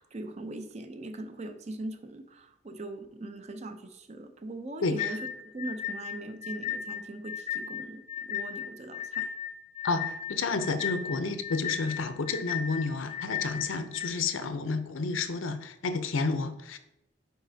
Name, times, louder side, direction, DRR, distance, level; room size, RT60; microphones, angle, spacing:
voice 1, 0.0-5.2 5.4-9.3, right 2 dB, 35° right, 8 dB, 0.5 m, -40 dB
voice 2, 4.8-5.2 9.8-16.8, left 4 dB, 85° left, 10 dB, 0.6 m, -30 dB
sound 1, 5.0-14.1, left 9 dB, 35° left, 0.4 m, -35 dB
9.3 x 4.0 x 2.7 m, 0.85 s
head